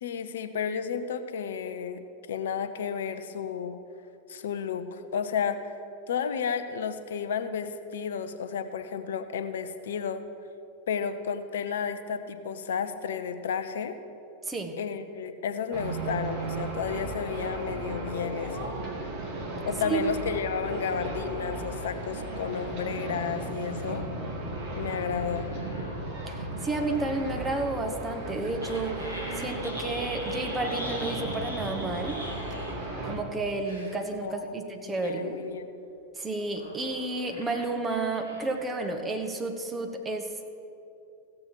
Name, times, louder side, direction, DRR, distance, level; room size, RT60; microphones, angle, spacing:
voice 1, 0.0-2.0 2.3-3.8 4.3-5.8 6.1-10.2 10.9-14.0 14.8-18.7 19.6-24.0 24.8-25.5 34.2-34.6 34.9-35.7, left 7 dB, 60° left, 10 dB, 0.7 m, -32 dB
voice 2, 14.5-14.8 19.8-20.0 26.3-29.0 29.4-32.2 33.0-35.3 36.2-40.5, right 2 dB, 15° right, 4 dB, 1.0 m, -31 dB
sound 1, 15.7-33.2, right 2 dB, 45° right, 2.0 m, -35 dB
sound 2, 24.5-27.7 28.6-32.9 33.6-34.1 35.0-35.4 36.4-38.9, equal, 85° right, 1.9 m, -43 dB
16.0 x 7.5 x 4.6 m, 2.7 s
figure-of-eight pair, 90°, 0 cm